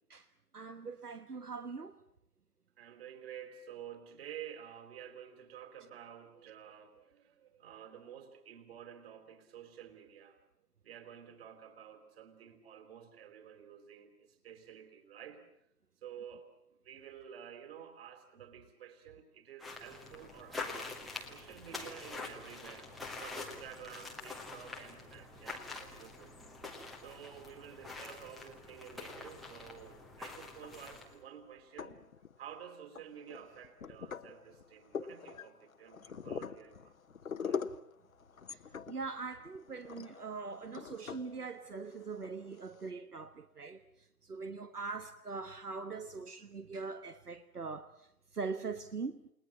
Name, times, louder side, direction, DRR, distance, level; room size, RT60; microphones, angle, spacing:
voice 1, 0.5-2.0 38.5-38.6 38.9-43.8 44.2-47.9 48.3-49.2, right 4 dB, 75° right, 1.5 m, -42 dB
voice 2, 2.8-10.4 10.8-15.4 16.0-16.5 16.8-26.3 27.0-32.0 32.4-36.9 37.4-37.6, right 9 dB, 40° right, 4.2 m, -51 dB
sound 1, 19.6-31.2, left 3 dB, ahead, 0.9 m, -46 dB
sound 2, 30.6-31.1 31.6-32.5 32.9-42.9, left 6 dB, 60° left, 1.2 m, -44 dB
29.5 x 19.5 x 7.5 m
figure-of-eight pair, 135°, 46 cm